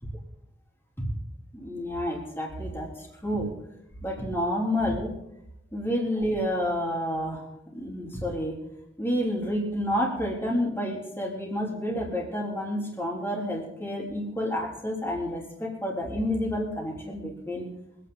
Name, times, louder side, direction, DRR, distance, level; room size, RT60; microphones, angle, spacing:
voice 1, 1.5-3.5 4.0-5.1 5.7-7.4 7.7-8.6 9.0-17.7, equal, 10° left, -3 dB, 3.4 m, -29 dB
25.0 x 9.3 x 4.0 m, 0.84 s
head